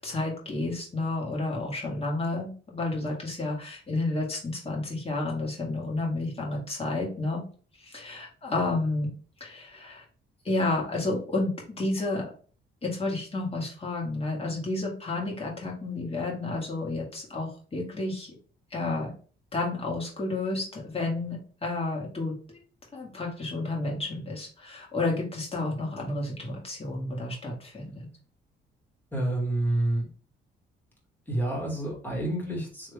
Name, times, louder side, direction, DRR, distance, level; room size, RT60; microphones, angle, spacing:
voice 1, 0.0-7.4 7.8-9.1 9.4-10.0 10.4-12.3 12.8-18.3 18.7-19.1 19.5-22.6 22.9-28.1, left 2 dB, 30° left, -1 dB, 1.9 m, -31 dB
voice 2, 29.1-30.1 31.3-32.9, right 1 dB, 10° left, -3 dB, 2.2 m, -28 dB
3.5 x 3.3 x 3.5 m, 0.39 s
cardioid pair, 90°, 20 cm